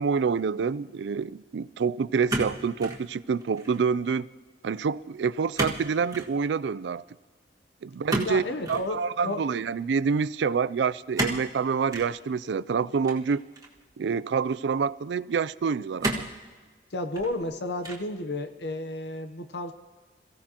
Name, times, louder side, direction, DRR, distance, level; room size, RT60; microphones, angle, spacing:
voice 1, 0.0-4.3 4.6-7.0 7.8-8.4 8.7-13.4 14.0-16.3, right 5 dB, 80° right, 18 dB, 0.4 m, -27 dB
sound 1, 2.3-3.0 3.4-3.8 5.6-5.8 6.1-6.3 8.1-8.9 11.1-11.5 11.9-12.1 13.0-13.8 14.5-14.6 16.0-16.4 17.0-17.5 17.8-18.2, right 1 dB, 20° right, 1.7 m, -31 dB
voice 2, 8.2-9.5 16.9-19.7, left 2 dB, 70° left, 8 dB, 0.8 m, -32 dB
27.5 x 15.5 x 2.9 m, 1.4 s
head